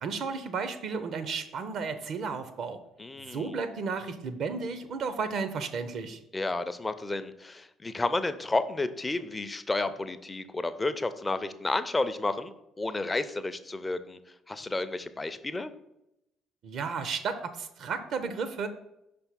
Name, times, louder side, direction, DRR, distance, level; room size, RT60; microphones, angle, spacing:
voice 1, 0.0-2.8 3.2-6.2 16.6-18.7, right 5 dB, 55° right, 10 dB, 0.5 m, -33 dB
voice 2, 3.0-3.5 6.3-14.2 14.5-15.7, left 2 dB, 20° left, 11 dB, 0.5 m, -31 dB
5.5 x 3.4 x 5.7 m, 0.86 s
figure-of-eight pair, 50°, 0 cm